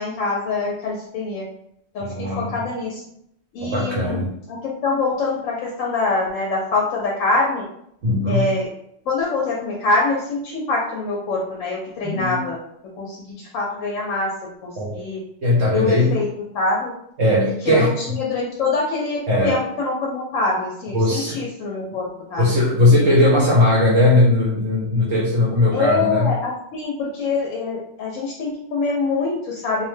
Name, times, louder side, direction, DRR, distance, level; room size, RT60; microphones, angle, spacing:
voice 1, 0.0-1.4 1.9-3.0 3.5-4.2 4.5-7.6 8.3-8.7 9.1-12.6 13.0-14.3 14.6-15.2 15.7-16.3 16.5-16.9 17.4-22.5 25.7-29.9, left 3 dB, 85° left, -3 dB, 1.0 m, -24 dB
voice 2, 2.0-2.6 3.6-4.3 8.0-8.5 12.0-12.4 14.8-14.9 15.4-16.2 17.2-17.9 19.3-19.6 20.9-21.4 22.4-26.3, left 1 dB, 65° right, -5 dB, 0.9 m, -18 dB
2.5 x 2.1 x 3.1 m, 0.75 s
omnidirectional pair, 1.4 m